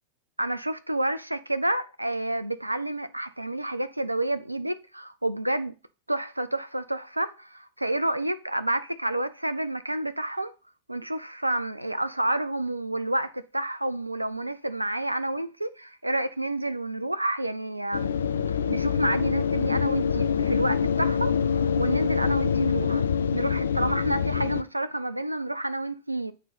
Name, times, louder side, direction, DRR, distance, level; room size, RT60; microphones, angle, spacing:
voice 1, 0.4-5.7 6.1-10.5 10.9-18.2 18.7-23.1 23.3-26.3, right 1 dB, 85° right, 0.4 m, -29 dB
sound 1, 17.9-24.6, left 7 dB, 70° left, 0.5 m, -25 dB
8.1 x 3.9 x 5.7 m
figure-of-eight pair, 90°, 0 cm